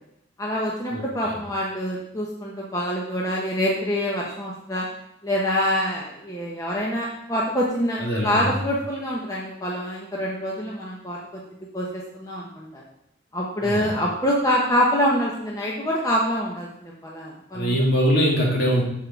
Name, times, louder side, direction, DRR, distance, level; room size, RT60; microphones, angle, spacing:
voice 1, 0.4-4.9 5.2-11.4 11.7-12.8 13.3-17.7, equal, 20° left, -3 dB, 0.9 m, -25 dB
voice 2, 0.9-1.3 8.0-8.5 13.6-13.9 17.5-18.8, equal, 55° left, -4 dB, 3.1 m, -22 dB
7.2 x 4.8 x 6.3 m, 0.81 s
head